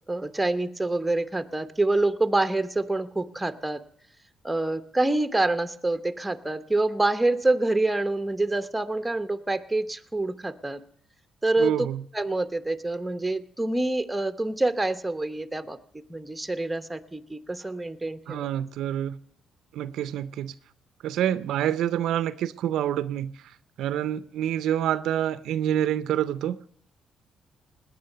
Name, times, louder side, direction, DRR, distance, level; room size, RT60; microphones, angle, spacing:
voice 1, 0.1-3.8 4.4-10.8 11.4-11.9 12.1-18.5, right 2 dB, 10° right, 0.9 m, -26 dB
voice 2, 11.6-12.0 18.3-19.2 19.7-20.5 21.0-23.3 23.8-26.6, right 11 dB, 80° right, 0.5 m, -27 dB
18.0 x 9.8 x 6.7 m
cardioid pair, 90°, 0 cm